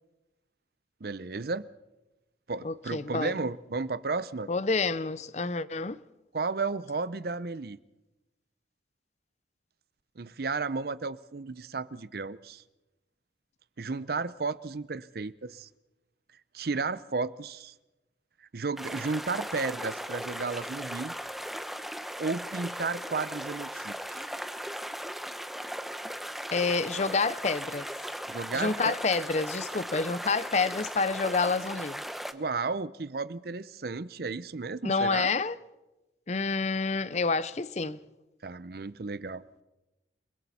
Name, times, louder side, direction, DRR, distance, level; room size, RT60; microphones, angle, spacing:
voice 1, 1.0-1.7 2.5-4.5 6.3-7.8 10.2-12.6 13.8-15.7 16.5-17.7 18.5-21.1 22.2-24.2 28.3-28.9 32.3-35.3 38.4-39.4, right 4 dB, 55° right, 0.6 m, -33 dB
voice 2, 2.6-3.3 4.5-6.0 26.5-27.9 28.5-32.0 34.8-35.6 36.3-38.0, left 4 dB, 35° left, 0.6 m, -28 dB
sound 1, 18.8-32.3, equal, ahead, 0.8 m, -38 dB
29.0 x 21.5 x 4.2 m
head